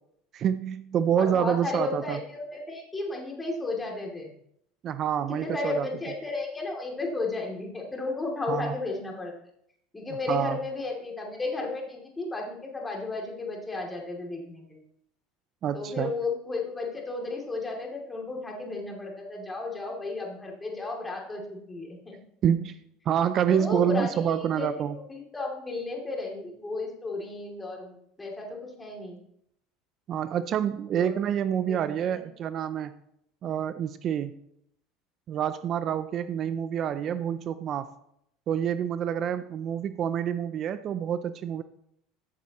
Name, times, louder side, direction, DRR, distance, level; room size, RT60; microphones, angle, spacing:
voice 1, 0.3-2.2 4.8-5.9 8.5-8.8 10.3-10.6 15.6-16.1 22.4-22.8 23.1-25.0 30.1-32.9 33.4-34.4 35.3-37.9 38.5-41.6, right 9 dB, 45° right, 13 dB, 0.5 m, -27 dB
voice 2, 1.2-4.3 5.3-9.3 9.9-14.8 15.7-22.2 23.5-29.2 30.9-31.1 31.7-31.8 32.1-32.2, left 3 dB, 15° left, 0 dB, 2.8 m, -34 dB
14.0 x 7.4 x 3.0 m, 0.74 s
supercardioid pair, 100°, 0 cm